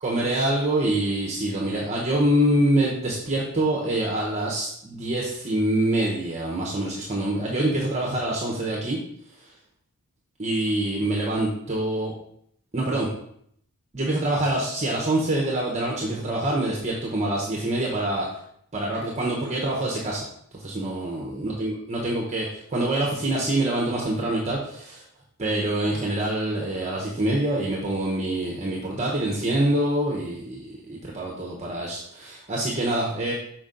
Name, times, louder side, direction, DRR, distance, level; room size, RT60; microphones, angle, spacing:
voice 1, 0.0-9.0 10.4-12.1 12.7-13.1 13.9-18.3 18.7-20.2 20.6-25.0 25.4-33.3, right 1 dB, 30° right, -2 dB, 1.0 m, -25 dB
6.0 x 4.6 x 3.9 m, 0.69 s
head